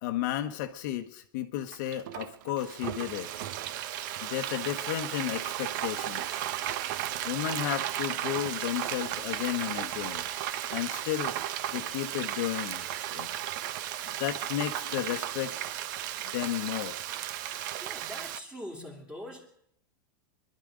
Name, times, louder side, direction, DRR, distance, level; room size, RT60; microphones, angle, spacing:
voice 1, 0.0-3.3 4.2-6.4 7.2-10.3 10.7-11.3 11.7-12.9 13.1-13.3 14.2-15.8 16.3-17.0, left 13 dB, 55° left, 6 dB, 1.1 m, -33 dB
Frying (food), 1.7-18.4, right 12 dB, 60° right, 0.8 m, -35 dB
voice 2, 17.8-19.5, equal, 10° right, 1 dB, 2.6 m, -42 dB
24.5 x 12.0 x 5.0 m, 0.72 s
supercardioid pair, 145°, 12 cm